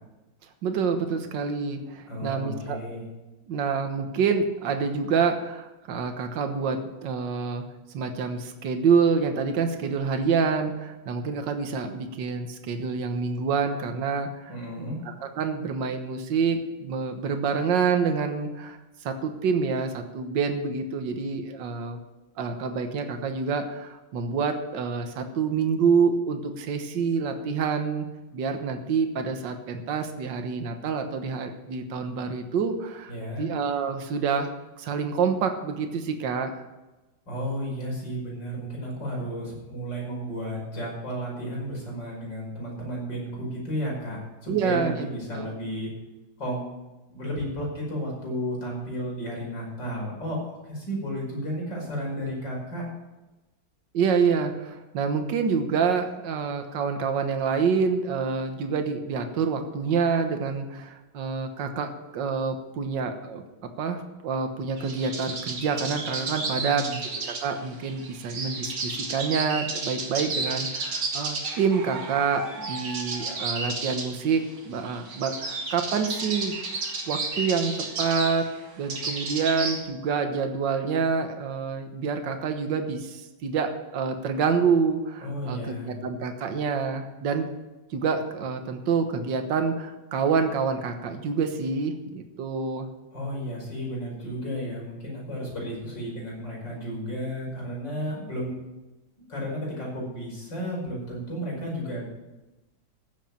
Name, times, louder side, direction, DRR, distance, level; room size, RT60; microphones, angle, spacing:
voice 1, 0.6-2.8 3.5-7.6 7.9-18.8 19.0-22.0 22.4-28.1 28.3-33.1 33.4-34.5 34.8-36.6 44.5-45.1 45.3-45.5 53.9-63.4 63.8-66.9 67.2-76.5 77.1-78.5 78.8-85.6 86.0-87.5 87.9-92.9, right 5 dB, 65° right, 6 dB, 1.8 m, -27 dB
voice 2, 2.1-3.1 14.5-15.2 33.1-33.5 37.3-45.9 46.4-46.6 47.1-52.8 66.5-67.0 85.2-86.0 93.1-98.6 99.3-102.1, equal, 60° left, -3 dB, 6.0 m, -33 dB
sound 1, 64.8-79.8, right 3 dB, 85° right, 2.8 m, -32 dB
15.0 x 7.3 x 7.2 m, 1.1 s
omnidirectional pair, 2.2 m